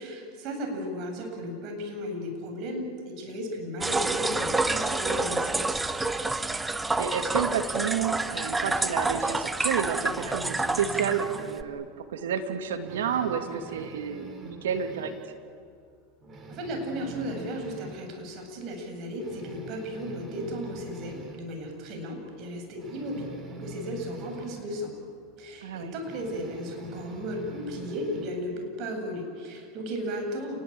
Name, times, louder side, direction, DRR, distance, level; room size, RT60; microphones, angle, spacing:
voice 1, 0.0-5.8 16.5-24.9 25.4-30.6, equal, 50° right, 3 dB, 8.0 m, -35 dB
sound 1, 3.8-11.6, right 2 dB, 10° right, 1.2 m, -28 dB
voice 2, 7.0-15.1 25.6-25.9, right 8 dB, 80° right, 7 dB, 2.7 m, -30 dB
sound 2, 10.1-11.7 12.1-12.3 12.6-15.4 15.7-15.8 16.2-18.1 18.6-18.7 19.1-21.5 22.8-24.7 26.0-28.4, right 2 dB, 30° right, 5.0 m, -44 dB
29.5 x 20.5 x 8.9 m, 2.2 s
hypercardioid pair, 100°, 0 cm